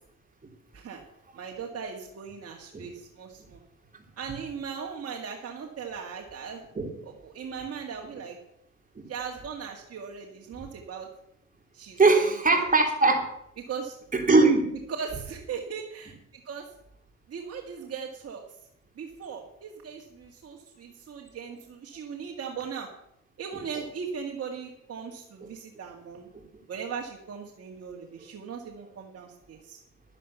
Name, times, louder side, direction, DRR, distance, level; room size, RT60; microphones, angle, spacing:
voice 1, 1.3-3.6 4.2-6.6 7.2-8.4 9.1-11.1 11.7-12.6 13.6-14.0 15.0-16.7 17.3-18.6 19.0-22.9 23.4-26.3 26.7-29.8, right 6 dB, 50° right, 1 dB, 2.2 m, -38 dB
voice 2, 12.0-13.3 14.1-14.7 25.4-25.5 26.3-26.4, right 3 dB, 25° right, 2 dB, 3.5 m, -21 dB
11.5 x 10.5 x 7.0 m, 0.75 s
cardioid pair, 90°, 30 cm